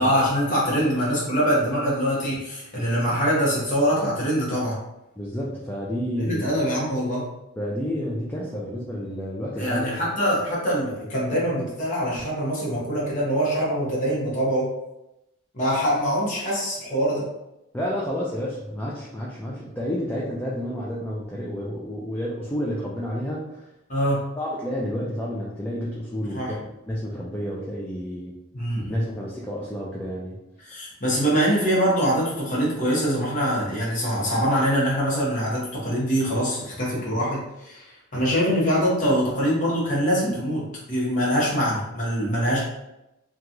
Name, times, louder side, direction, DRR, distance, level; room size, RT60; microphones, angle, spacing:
voice 1, 0.0-4.8 6.2-7.3 9.6-14.7 15.5-17.3 19.5-19.6 23.9-24.3 26.3-26.5 28.5-29.1 30.6-40.6 40.9-42.6, equal, 40° left, -6 dB, 0.9 m, -24 dB
voice 2, 5.2-6.6 7.6-10.1 17.7-23.7 24.4-28.3 28.9-30.4, equal, 10° left, -5 dB, 0.3 m, -30 dB
2.9 x 2.3 x 2.5 m, 0.90 s
head